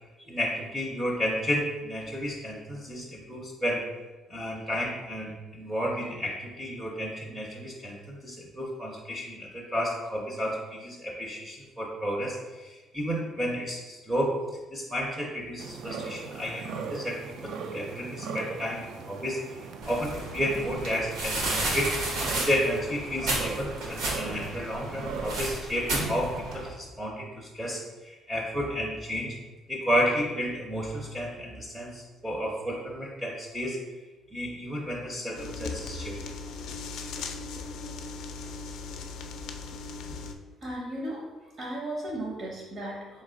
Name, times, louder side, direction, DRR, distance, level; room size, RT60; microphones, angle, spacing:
voice 1, 0.2-3.9 4.3-14.3 14.7-21.9 22.2-29.3 29.7-33.8 34.3-36.2, equal, 10° right, -2 dB, 0.5 m, -32 dB
sound 1, 15.6-25.5, right 5 dB, 60° right, 0.3 m, -39 dB
sound 2, 19.8-26.7, right 1 dB, 80° right, 1.2 m, -32 dB
sound 3, 35.4-40.3, left 4 dB, 70° left, 0.4 m, -38 dB
voice 2, 40.6-43.2, right 1 dB, 45° right, -3 dB, 0.7 m, -36 dB
4.0 x 3.1 x 3.7 m, 1.2 s
cardioid pair, 165°, 0 cm